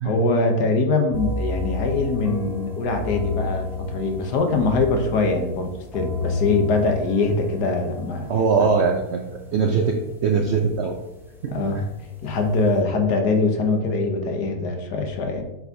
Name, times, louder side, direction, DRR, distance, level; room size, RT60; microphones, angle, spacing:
voice 1, 0.0-8.3 11.5-11.8 12.2-15.4, left 3 dB, 75° left, 4 dB, 1.4 m, -23 dB
sound 1, 1.1-12.8, left 3 dB, 5° right, 0.3 m, -32 dB
voice 2, 8.3-9.9 10.2-10.9 11.4-11.6, right 5 dB, 70° right, 2 dB, 0.6 m, -21 dB
7.8 x 4.9 x 2.7 m, 0.94 s
omnidirectional pair, 1.8 m